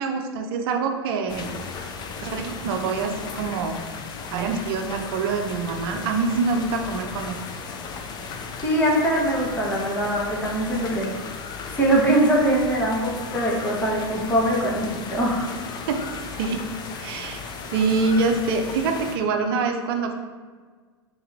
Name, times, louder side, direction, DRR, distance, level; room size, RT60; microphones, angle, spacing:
voice 1, 0.0-1.5 2.2-3.8 4.3-7.3 15.9-16.0 16.4-16.7 17.0-17.4 17.7-20.1, right 4 dB, 60° right, 4 dB, 0.6 m, -25 dB
sound 1, 1.3-19.2, left 5 dB, 30° left, 0.5 m, -36 dB
voice 2, 8.6-11.1 11.7-15.5, right 1 dB, 15° left, -4 dB, 1.3 m, -22 dB
3.9 x 2.9 x 4.0 m, 1.5 s
hypercardioid pair, 100°, 14 cm